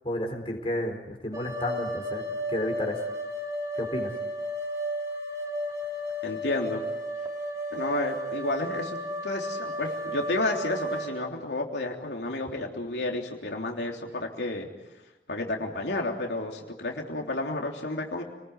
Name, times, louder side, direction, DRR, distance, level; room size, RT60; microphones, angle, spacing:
voice 1, 0.0-2.2 2.5-3.0 3.7-4.1, left 1 dB, 30° left, 2 dB, 4.1 m, -31 dB
sound 1, 1.3-11.1, equal, 20° right, 4.2 m, -33 dB
voice 2, 6.2-6.8 7.7-9.0 9.2-14.7 15.3-18.2, left 2 dB, 75° left, 1 dB, 3.4 m, -31 dB
29.5 x 20.5 x 9.6 m, 1.0 s
head